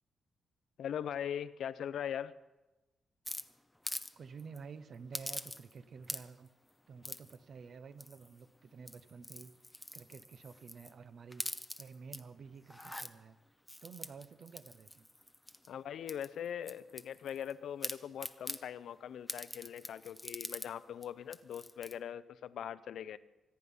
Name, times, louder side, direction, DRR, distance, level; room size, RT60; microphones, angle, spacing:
voice 1, 0.8-2.3 15.7-23.2, left 9 dB, 80° left, 15 dB, 0.6 m, -41 dB
sound 1, 3.3-4.1 4.4-4.6 5.1-5.8 6.0-6.5 7.0-7.4 8.0-8.4 8.8-10.9 11.3-12.2 12.6-13.1 13.7-15.7 16.1-17.5 17.8-18.6 19.3-20.7 21.0-21.1 21.3-21.9, left 1 dB, 5° left, 0.8 m, -44 dB
voice 2, 4.2-6.5 6.9-13.4 13.8-15.0, right 5 dB, 55° right, 13 dB, 0.9 m, -51 dB
25.0 x 9.7 x 5.5 m, 1.1 s
cardioid pair, 125°, 0 cm